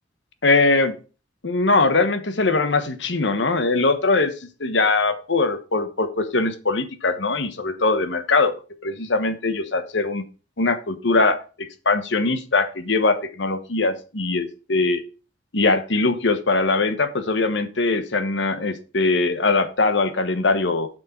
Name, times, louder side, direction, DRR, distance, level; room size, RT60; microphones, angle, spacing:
voice 1, 0.4-0.9 1.4-4.3 4.6-8.5 8.8-10.2 10.6-15.0 15.5-20.9, left 3 dB, 70° left, 10 dB, 1.2 m, -21 dB
8.0 x 6.4 x 4.5 m, 0.34 s
head